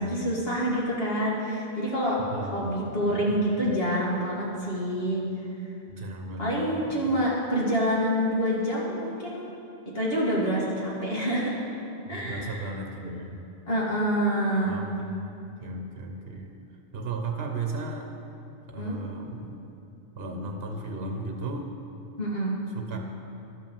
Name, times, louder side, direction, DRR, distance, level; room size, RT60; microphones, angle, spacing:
voice 1, 0.0-5.2 6.4-9.5 9.9-11.5 12.1-12.7 13.7-14.8 18.8-19.0 22.2-22.5, equal, 60° left, -6 dB, 2.3 m, -27 dB
voice 2, 2.2-3.7 5.9-7.2 12.1-13.4 14.6-15.3 15.6-16.5 16.9-18.1 18.7-19.7 20.2-21.7 22.7-23.0, right 2 dB, 65° right, 3 dB, 1.1 m, -35 dB
12.0 x 5.5 x 7.1 m, 2.7 s
omnidirectional pair, 1.1 m